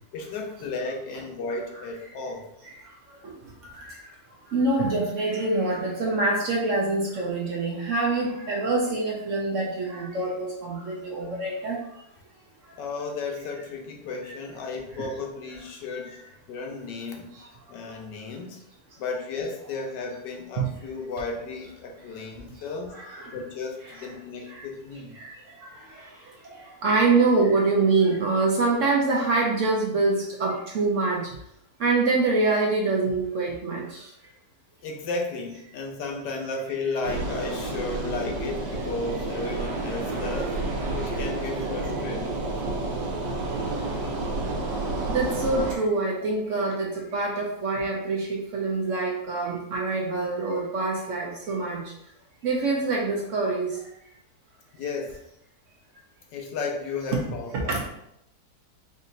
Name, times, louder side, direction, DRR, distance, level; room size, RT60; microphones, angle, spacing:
voice 1, 0.1-2.5 12.8-16.2 16.5-17.3 17.7-18.6 19.0-22.9 23.3-25.1 34.8-40.6 40.9-42.4 54.7-55.2 56.3-57.8, left 3 dB, 75° left, 1 dB, 1.3 m, -34 dB
voice 2, 4.5-11.8 15.0-15.1 20.6-20.7 22.9-23.4 23.9-24.1 24.5-24.6 25.2-25.3 26.4-31.3 31.8-34.0 45.1-51.8 52.4-53.7 57.1-57.2 57.5-57.8, right 3 dB, 65° right, -2 dB, 0.8 m, -25 dB
sound 1, 37.0-45.8, right 2 dB, 80° right, 1.5 m, -30 dB
5.1 x 2.6 x 2.6 m, 0.78 s
omnidirectional pair, 2.0 m